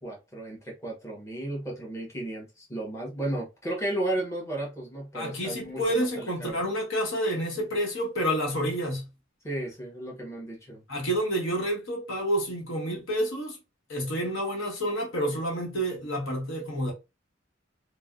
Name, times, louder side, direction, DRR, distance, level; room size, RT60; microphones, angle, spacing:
voice 1, 0.0-6.6 9.4-10.8, right 1 dB, 15° left, 1.0 m, -34 dB
voice 2, 5.1-9.1 10.9-13.6 13.9-16.9, equal, 70° left, 1.0 m, -29 dB
3.2 x 2.1 x 2.4 m
head